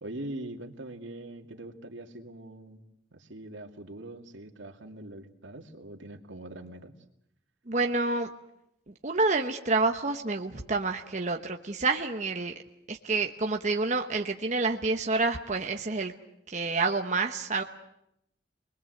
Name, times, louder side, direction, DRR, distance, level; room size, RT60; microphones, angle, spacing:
voice 1, 0.0-2.8 3.1-6.9, right 1 dB, 80° right, 4 dB, 2.4 m, -42 dB
voice 2, 7.7-8.3 9.0-12.5 12.9-16.1 16.5-17.6, right 3 dB, 40° right, 4 dB, 1.0 m, -28 dB
27.5 x 21.5 x 7.9 m, 0.79 s
head